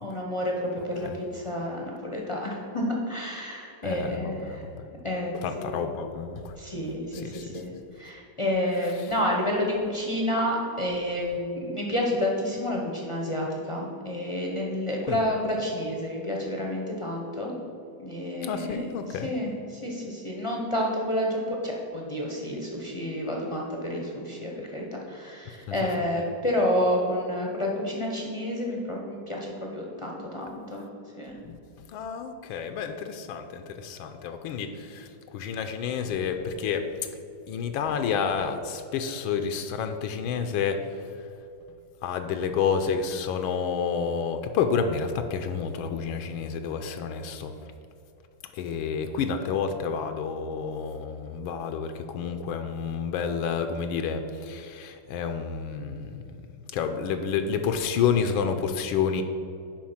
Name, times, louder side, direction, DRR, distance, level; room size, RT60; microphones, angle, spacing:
voice 1, 0.0-4.6 5.0-5.8 6.6-17.5 18.0-30.8 31.2-31.4, left 1 dB, 35° left, -2 dB, 0.4 m, -30 dB
voice 2, 3.8-4.9 5.4-6.5 7.1-7.6 15.1-15.2 18.4-19.3 25.7-26.0 31.4-36.8 37.5-41.0 42.0-47.5 48.5-56.2 56.7-59.2, left 6 dB, 85° left, 7 dB, 1.4 m, -29 dB
7.4 x 5.2 x 5.7 m, 2.6 s
omnidirectional pair, 2.2 m